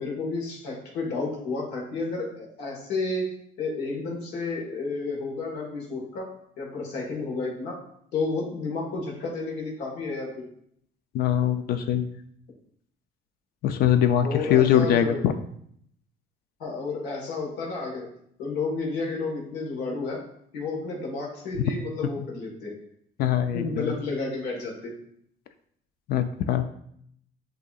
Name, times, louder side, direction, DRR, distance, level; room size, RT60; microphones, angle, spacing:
voice 1, 0.0-3.3 3.6-6.3 6.6-7.8 8.1-10.5 14.2-15.2 16.6-18.1 18.4-20.2 20.5-22.7 23.5-24.9, left 3 dB, 85° left, -2 dB, 1.4 m, -31 dB
voice 2, 11.1-12.1 13.6-15.4 21.6-21.7 23.2-23.9 26.1-26.6, left 10 dB, 65° left, 9 dB, 0.4 m, -22 dB
7.6 x 2.7 x 2.4 m, 0.68 s
cardioid pair, 110°, 17 cm